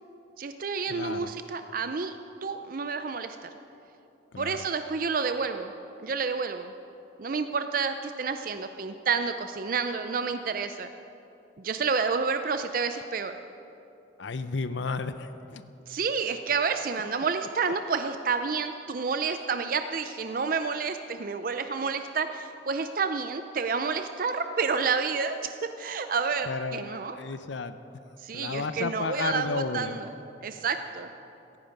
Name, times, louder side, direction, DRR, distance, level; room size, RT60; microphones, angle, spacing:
voice 1, 0.4-2.1 2.4-3.5 4.4-5.7 6.0-6.7 7.2-10.9 11.6-13.3 15.9-27.2 28.2-30.1 30.4-31.1, right 5 dB, 50° right, 8 dB, 0.5 m, -29 dB
voice 2, 0.9-1.3 4.3-4.6 14.2-15.6 16.9-17.0 26.5-27.8 28.3-30.0, left 4 dB, 80° left, 11 dB, 0.6 m, -33 dB
17.0 x 15.0 x 5.3 m, 2.9 s
head